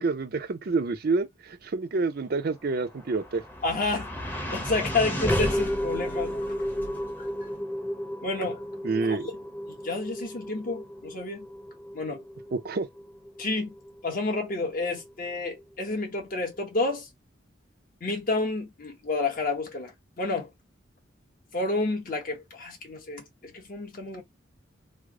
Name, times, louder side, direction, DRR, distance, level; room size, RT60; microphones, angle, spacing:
voice 1, 0.0-3.4 8.8-9.3 12.5-12.9, right 3 dB, 55° right, 0.5 m, -28 dB
sound 1, 2.7-15.1, equal, 10° left, 0.8 m, -33 dB
voice 2, 3.6-6.6 7.1-7.3 8.2-8.6 9.0-9.2 9.7-11.4 11.9-12.2 13.4-13.7 14.0-17.1 18.0-20.5 21.5-24.2, left 3 dB, 50° left, 1.1 m, -30 dB
3.3 x 2.0 x 3.6 m
head